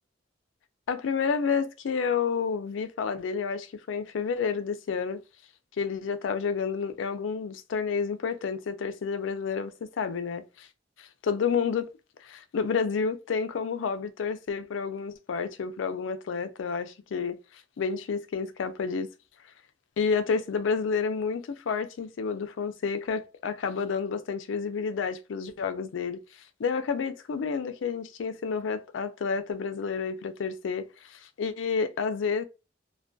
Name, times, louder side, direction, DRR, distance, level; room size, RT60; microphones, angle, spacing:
voice 1, 0.9-5.2 5.8-10.7 11.0-11.9 12.2-17.4 17.8-19.1 20.0-26.2 26.6-32.4, left 5 dB, 85° left, 0.4 m, -30 dB
2.2 x 2.2 x 2.5 m
head